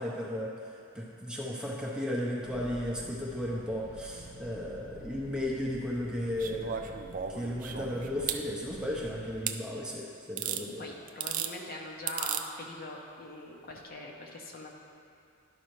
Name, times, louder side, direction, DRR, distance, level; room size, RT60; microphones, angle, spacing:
voice 1, 0.0-6.9 7.3-10.9, left 1 dB, 5° right, -4 dB, 0.7 m, -35 dB
sound 1, 2.4-9.4, equal, 75° left, 0.9 m, -49 dB
sound 2, 6.4-8.4 9.5-9.6 10.4-10.6 11.1-11.5 12.1-12.4 13.7-13.8, right 9 dB, 40° right, 0.3 m, -35 dB
voice 2, 10.5-14.7, left 2 dB, 45° left, -1 dB, 0.8 m, -42 dB
12.0 x 5.5 x 3.1 m, 2.6 s
head